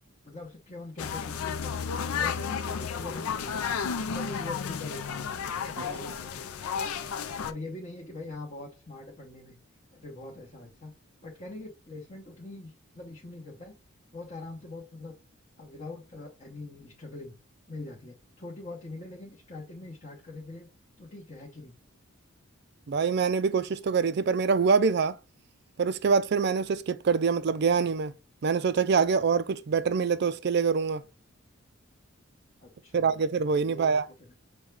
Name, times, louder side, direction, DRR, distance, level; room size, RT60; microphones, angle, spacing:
voice 1, 0.2-3.6 4.0-5.3 5.7-6.5 7.4-9.6 9.9-10.9 11.2-13.7 14.1-15.2 15.6-17.3 17.7-20.7 21.0-21.8 32.6-33.2 33.6-34.4, left 2 dB, 35° left, 1.0 m, -43 dB
sound 1, 1.0-7.5, left 6 dB, 85° left, 0.4 m, -32 dB
voice 2, 22.9-25.2 25.8-28.1 28.4-31.0 32.9-34.0, right 5 dB, 50° right, 0.4 m, -25 dB
6.3 x 2.2 x 3.2 m
head